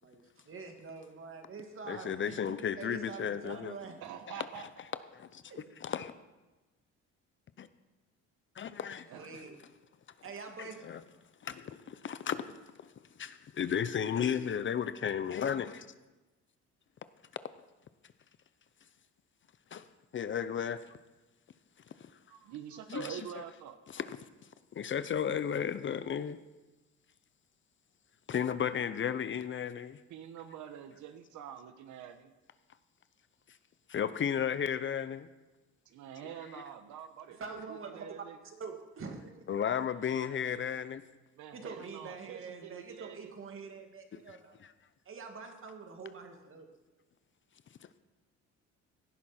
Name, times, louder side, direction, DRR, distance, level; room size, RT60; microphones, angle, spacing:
voice 1, 0.0-4.0 5.5-5.7 9.1-9.6 10.2-10.8 37.3-38.1 38.4-39.4 39.9-40.0 41.5-44.6 45.1-46.7, right 4 dB, 45° right, 2.3 m, -45 dB
voice 2, 1.9-3.7 4.3-4.5 5.1-5.4 5.8-6.1 7.6-7.7 8.6-9.1 9.3-9.4 10.6-11.0 11.4-12.5 12.8-12.9 13.2-15.9 19.7-19.8 20.1-20.8 22.9-23.2 23.9-24.2 24.7-26.4 28.3-30.0 33.9-35.3 36.2-36.3 39.5-41.0 44.1-44.7, left 8 dB, 40° left, 0.7 m, -34 dB
voice 3, 4.0-4.7 9.1-9.4 22.3-23.8 30.1-32.3 35.9-38.4 41.3-43.3, right 9 dB, 70° right, 1.1 m, -46 dB
17.0 x 11.0 x 4.4 m
cardioid pair, 100°, 30 cm